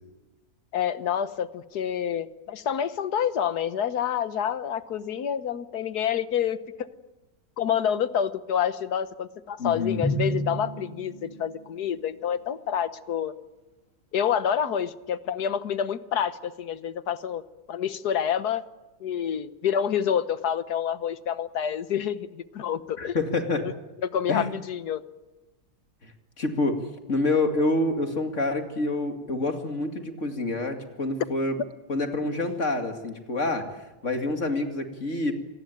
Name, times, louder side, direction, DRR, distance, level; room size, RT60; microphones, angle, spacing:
voice 1, 0.7-6.6 7.6-13.3 14.1-17.4 17.7-18.6 19.0-23.2 24.0-25.0, left 8 dB, 90° left, 13 dB, 1.6 m, -28 dB
voice 2, 9.6-10.0 23.0-23.7 24.3-24.5 26.0-31.6 31.9-35.3, left 2 dB, 50° left, 5 dB, 2.6 m, -27 dB
Drum, 10.0-12.2, right 1 dB, 5° left, 7.3 m, -31 dB
26.5 x 19.5 x 9.2 m, 1.1 s
omnidirectional pair, 1.6 m